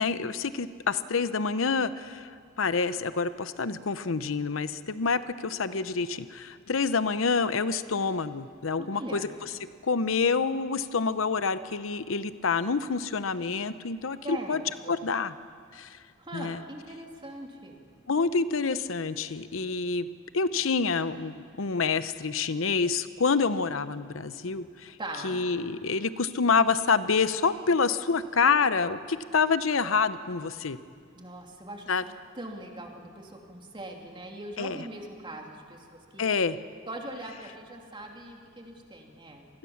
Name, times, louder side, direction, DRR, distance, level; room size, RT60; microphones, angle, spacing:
voice 1, 0.0-9.5 9.8-14.6 14.9-15.3 15.7-16.0 16.3-16.6 18.1-20.1 20.3-25.0 25.2-30.8 31.9-32.0 34.6-34.8 36.2-36.6, left 5 dB, 85° left, 13 dB, 0.8 m, -27 dB
voice 2, 8.8-9.3 14.2-15.0 16.2-17.8 25.0-25.4 31.1-31.9 32.3-36.3 36.9-39.5, right 1 dB, 25° right, 1 dB, 2.9 m, -41 dB
26.5 x 19.5 x 7.2 m, 2.1 s
head